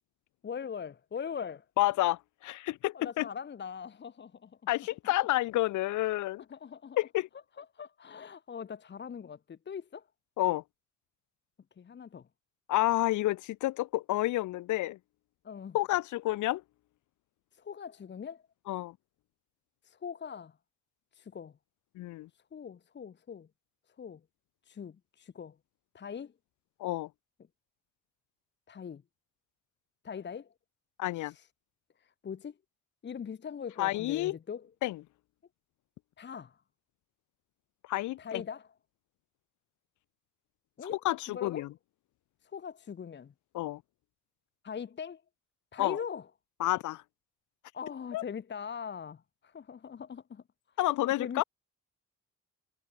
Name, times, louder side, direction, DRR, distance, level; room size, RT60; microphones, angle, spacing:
voice 1, 0.4-1.6 2.9-4.6 6.5-7.0 7.6-10.1 11.8-12.3 15.4-15.8 17.5-18.4 19.8-20.6 21.1-21.5 22.5-23.5 24.0-24.2 24.7-25.6 25.9-26.3 28.7-29.0 30.0-30.5 31.2-31.5 32.0-32.5 33.0-34.6 36.2-36.6 38.2-38.7 40.8-41.0 41.3-41.7 42.4-43.3 44.6-45.2 45.7-46.3 47.7-50.4 51.0-51.4, left 7 dB, 35° left, 1.0 m, -41 dB
voice 2, 1.8-3.3 4.7-6.4 7.0-7.3 10.4-10.6 12.7-15.0 15.7-16.6 18.7-19.0 21.9-22.3 26.8-27.1 31.0-31.3 33.8-34.4 34.8-35.0 37.9-38.4 40.8-41.7 43.5-43.8 45.8-46.0 46.6-47.0 48.1-48.2 50.8-51.4, left 16 dB, 75° left, 0.7 m, -30 dB
cardioid pair, 90°, 30 cm